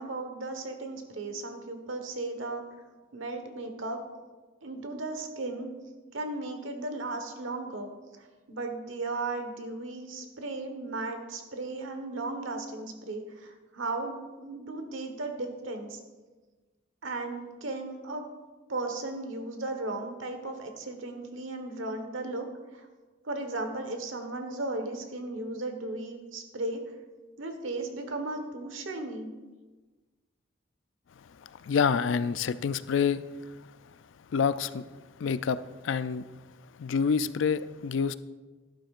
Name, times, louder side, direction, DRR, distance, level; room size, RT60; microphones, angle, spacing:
voice 1, 0.0-2.6 3.1-4.0 4.6-5.7 6.1-7.9 8.2-16.0 17.0-18.3 18.7-22.5 22.7-22.9 23.2-26.8 27.4-29.3, right 2 dB, 85° right, 6 dB, 1.2 m, -36 dB
voice 2, 31.4-33.2 34.3-34.8 35.2-36.3 36.8-38.1, left 6 dB, 70° left, 15 dB, 0.4 m, -27 dB
12.0 x 11.5 x 2.5 m, 1.3 s
head